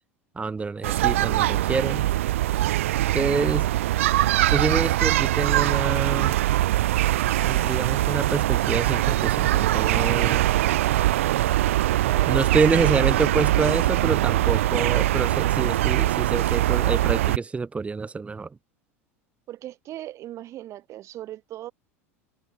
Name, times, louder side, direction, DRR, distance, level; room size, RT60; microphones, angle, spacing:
voice 1, 0.4-2.1 3.1-3.7 4.5-6.3 7.4-10.4 12.2-18.5, right 4 dB, 15° right, 2.0 m, -27 dB
sound 1, 0.8-17.4, right 15 dB, 65° right, 0.7 m, -22 dB
voice 2, 11.8-12.5 19.5-21.7, right 13 dB, 40° right, 4.0 m, -38 dB
figure-of-eight pair, 75°, 8 cm